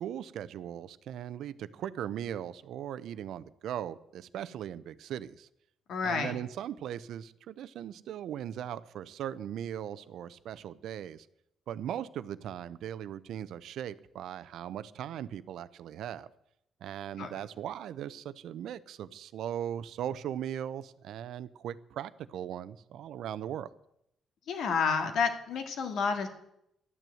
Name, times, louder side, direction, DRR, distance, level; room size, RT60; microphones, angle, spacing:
voice 1, 0.0-5.5 6.0-11.3 11.7-16.3 16.8-23.7, right 10 dB, 75° right, 16 dB, 0.6 m, -39 dB
voice 2, 5.9-6.4 17.2-17.3 24.5-26.3, left 5 dB, 70° left, 6 dB, 2.0 m, -30 dB
12.0 x 9.3 x 7.7 m, 0.78 s
cardioid pair, 90°, 0 cm